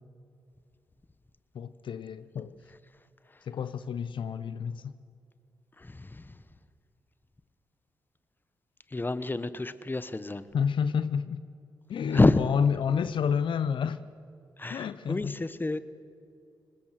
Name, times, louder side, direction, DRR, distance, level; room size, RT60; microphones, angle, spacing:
voice 1, 1.5-2.5 3.4-4.9 10.5-11.4 11.9-14.0 14.7-15.4, left 7 dB, 70° left, 13 dB, 0.7 m, -29 dB
voice 2, 5.8-6.4 8.9-10.5 12.1-12.4 14.6-15.8, left 2 dB, 20° left, 14 dB, 1.2 m, -28 dB
23.5 x 19.5 x 7.6 m, 2.5 s
supercardioid pair, 55°, 9 cm